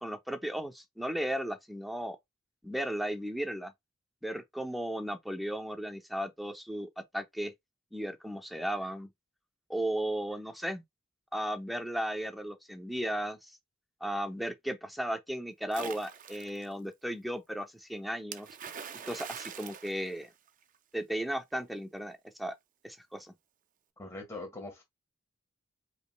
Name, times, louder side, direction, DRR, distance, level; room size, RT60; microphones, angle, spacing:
voice 1, 0.0-2.2 2.6-3.7 4.2-7.5 7.9-9.1 9.7-10.8 11.3-13.5 14.0-18.5 19.0-20.3 20.9-22.5 22.8-23.3, right 1 dB, ahead, 0.6 m, -35 dB
Splash splatter, 15.7-16.7 18.3-20.8, right 7 dB, 40° right, 0.5 m, -43 dB
voice 2, 24.0-24.8, left 2 dB, 15° left, 1.4 m, -42 dB
5.0 x 2.9 x 2.3 m
head